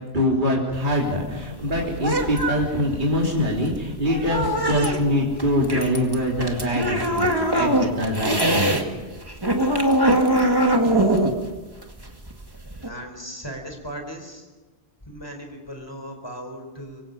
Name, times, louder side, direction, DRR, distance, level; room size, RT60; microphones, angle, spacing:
voice 1, 0.1-8.8, left 1 dB, 50° right, -2 dB, 3.5 m, -24 dB
sound 1, 0.7-8.8 9.1-12.9, right 1 dB, 20° right, 2.2 m, -23 dB
voice 2, 10.8-11.3 12.8-14.5 15.0-17.1, equal, 25° left, 3 dB, 4.6 m, -37 dB
25.0 x 24.5 x 5.4 m, 1.3 s
omnidirectional pair, 1.1 m